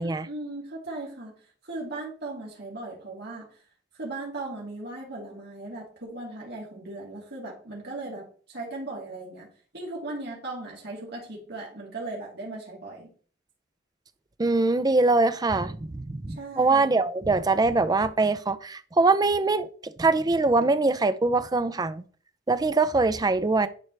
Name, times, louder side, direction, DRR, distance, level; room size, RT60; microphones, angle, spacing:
voice 1, 0.0-1.3 1.6-3.5 4.0-9.5 9.7-13.1 16.3-16.9, right 2 dB, 60° right, 2.8 m, -37 dB
voice 2, 14.4-22.0 22.5-23.7, right 3 dB, 20° right, 0.5 m, -23 dB
11.0 x 4.7 x 3.3 m
head